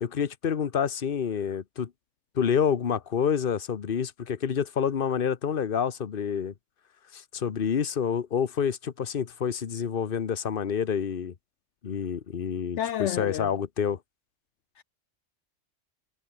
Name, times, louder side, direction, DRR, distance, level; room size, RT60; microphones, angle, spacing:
voice 1, 0.0-1.9 2.3-6.5 7.1-11.3 11.8-14.0, left 7 dB, 45° left, 1.2 m, -28 dB
voice 2, 12.8-13.5 14.8-14.9, left 11 dB, 70° left, 0.9 m, -30 dB
omnidirectional pair, 1.3 m